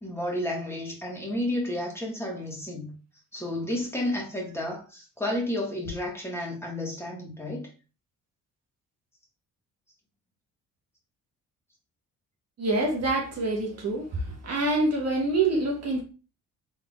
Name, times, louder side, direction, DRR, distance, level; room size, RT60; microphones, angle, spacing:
voice 1, 0.0-2.9 3.3-7.7, left 1 dB, 10° left, 1.5 m, -31 dB
voice 2, 12.6-16.0, right 2 dB, 55° right, 1.2 m, -26 dB
3.7 x 3.7 x 2.4 m
cardioid pair, 90°, 30 cm